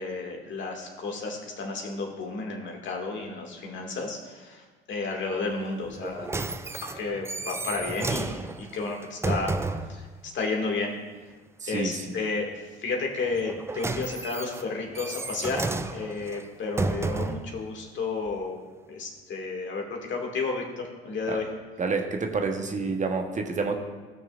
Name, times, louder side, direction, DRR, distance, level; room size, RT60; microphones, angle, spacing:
voice 1, 0.0-6.3 6.7-9.5 9.9-10.1 10.3-10.9 11.7-12.5 12.8-18.6 18.9-21.5, left 3 dB, 40° left, 1 dB, 2.2 m, -32 dB
sound 1, 5.9-10.0 13.3-17.5 18.3-18.4, right 3 dB, 10° right, 0.5 m, -32 dB
voice 2, 11.6-12.2 21.3-21.4 21.8-23.8, right 4 dB, 25° right, 4 dB, 1.1 m, -28 dB
17.0 x 6.1 x 2.5 m, 1.3 s
figure-of-eight pair, 65°, 30 cm